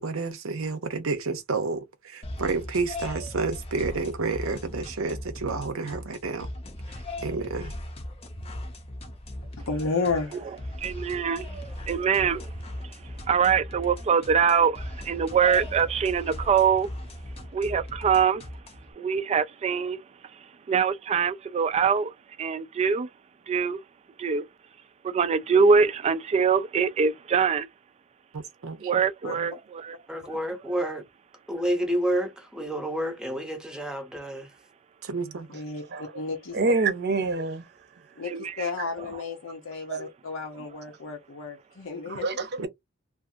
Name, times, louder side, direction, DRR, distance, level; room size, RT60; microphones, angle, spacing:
voice 1, 0.0-6.5 7.2-7.8 28.3-29.5 35.0-35.6 42.6-42.7, right 4 dB, 90° right, 0.7 m, -30 dB
sound 1, 2.2-18.9, left 1 dB, 30° left, 0.6 m, -38 dB
voice 2, 9.6-10.5 29.2-29.4 35.5-36.6 38.2-42.3, left 4 dB, 75° left, 0.7 m, -32 dB
voice 3, 10.8-11.5 11.9-12.4 12.8-13.0 13.3-16.9 17.5-18.5 19.0-20.0 20.3-22.1 22.4-23.1 23.5-23.8 24.2-24.4 25.0-27.7 28.8-29.9 38.2-38.7 39.0-39.1, right 6 dB, 30° right, 0.3 m, -24 dB
voice 4, 30.1-31.0 31.5-34.5, equal, 5° right, 0.7 m, -29 dB
voice 5, 36.5-37.6 39.9-40.1 42.1-42.7, right 3 dB, 55° right, 0.7 m, -26 dB
2.5 x 2.4 x 2.5 m
head